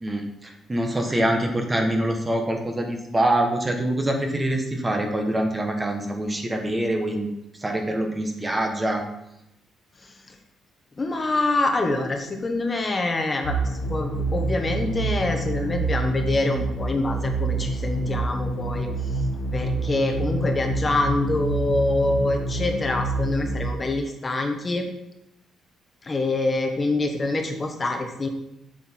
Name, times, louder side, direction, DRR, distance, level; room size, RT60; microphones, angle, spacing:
voice 1, 0.0-7.3 7.6-9.0, right 1 dB, 20° right, 3 dB, 1.3 m, -25 dB
voice 2, 11.0-13.5 13.9-18.9 19.5-24.9 26.0-28.3, left 2 dB, 30° left, 4 dB, 1.3 m, -25 dB
sound 1, 13.4-23.7, right 2 dB, 50° left, 1.6 m, -27 dB
7.8 x 7.4 x 4.5 m, 0.85 s
cardioid pair, 90°, 0 cm